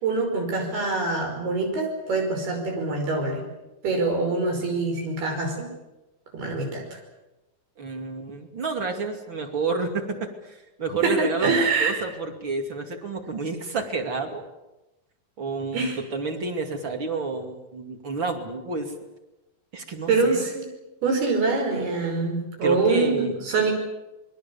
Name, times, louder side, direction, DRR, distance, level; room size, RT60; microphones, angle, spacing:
voice 1, 0.0-3.4 3.8-5.7 6.3-7.0 11.0-12.0 15.7-16.0 20.1-20.6 21.0-23.7, right 3 dB, 90° right, 2 dB, 7.4 m, -24 dB
voice 2, 7.8-14.4 15.4-18.9 19.7-20.4 22.6-23.4, right 4 dB, 35° right, 4 dB, 2.8 m, -30 dB
27.5 x 22.0 x 7.1 m, 1.0 s
omnidirectional pair, 4.4 m